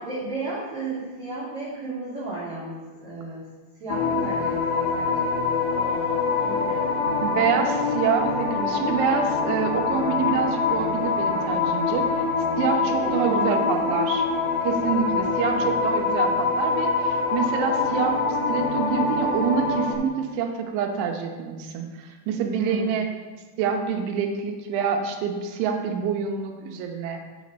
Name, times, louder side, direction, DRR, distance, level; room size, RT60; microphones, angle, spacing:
voice 1, 0.0-3.4 3.8-5.3 5.7-7.0 12.8-14.0 15.5-15.7 22.5-23.0, right 2 dB, 55° right, -7 dB, 2.2 m, -34 dB
sound 1, 3.9-19.9, left 4 dB, 85° left, 1.9 m, -24 dB
voice 2, 7.2-12.2 12.6-14.2 14.6-18.2 18.5-23.1 23.6-27.2, right 7 dB, 80° right, 3 dB, 3.0 m, -26 dB
8.4 x 4.1 x 6.5 m, 1.3 s
omnidirectional pair, 5.7 m